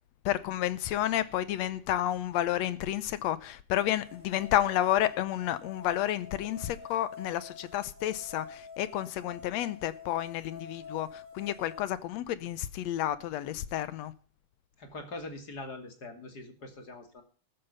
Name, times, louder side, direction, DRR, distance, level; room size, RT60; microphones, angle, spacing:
voice 1, 0.3-14.1, left 12 dB, 70° left, 1.8 m, -31 dB
sound 1, 3.8-11.8, left 5 dB, 30° right, 2.0 m, -48 dB
voice 2, 14.8-17.2, left 2 dB, 35° left, 2.8 m, -43 dB
13.5 x 11.5 x 5.5 m
omnidirectional pair, 3.5 m